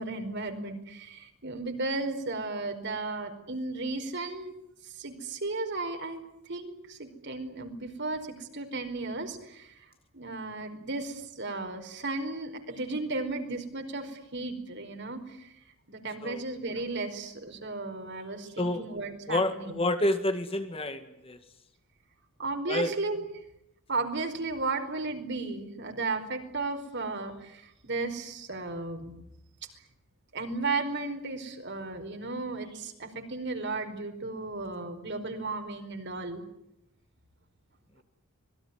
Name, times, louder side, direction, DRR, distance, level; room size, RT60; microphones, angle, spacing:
voice 1, 0.0-4.6 4.9-6.2 6.5-9.7 10.1-15.5 15.9-19.7 22.4-23.2 23.9-29.1 30.3-36.4, right 3 dB, 55° right, 6 dB, 4.7 m, -34 dB
voice 2, 19.3-21.4 22.7-22.9, left 1 dB, 25° left, 8 dB, 2.0 m, -29 dB
26.0 x 21.5 x 9.6 m, 0.82 s
head